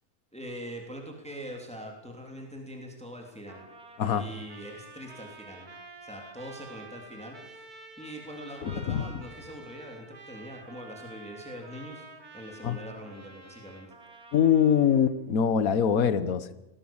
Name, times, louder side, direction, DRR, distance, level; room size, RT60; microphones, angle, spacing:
voice 1, 0.3-3.6 4.1-5.7 6.0-7.6 8.0-12.1 12.3-13.9, equal, 5° left, 1 dB, 3.2 m, -43 dB
Trumpet, 3.5-15.1, right 3 dB, 85° right, 3.0 m, -49 dB
voice 2, 8.6-9.0 12.6-12.8 14.3-16.5, left 8 dB, 70° left, 13 dB, 1.6 m, -23 dB
22.0 x 17.0 x 7.3 m, 0.94 s
omnidirectional pair, 1.6 m